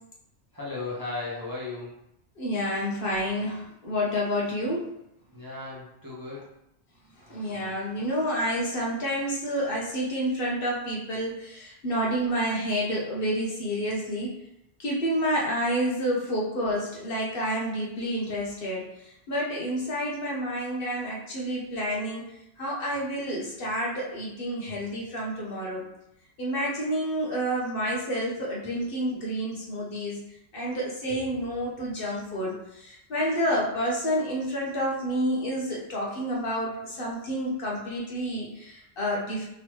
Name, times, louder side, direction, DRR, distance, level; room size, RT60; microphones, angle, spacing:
voice 1, 0.5-1.9 5.3-6.5, left 3 dB, 20° right, -7 dB, 0.7 m, -35 dB
voice 2, 2.4-4.9 7.2-14.3 14.8-25.9 26.4-30.2 30.5-39.5, equal, 55° left, -4 dB, 1.0 m, -29 dB
3.5 x 3.1 x 3.0 m, 0.83 s
omnidirectional pair, 1.2 m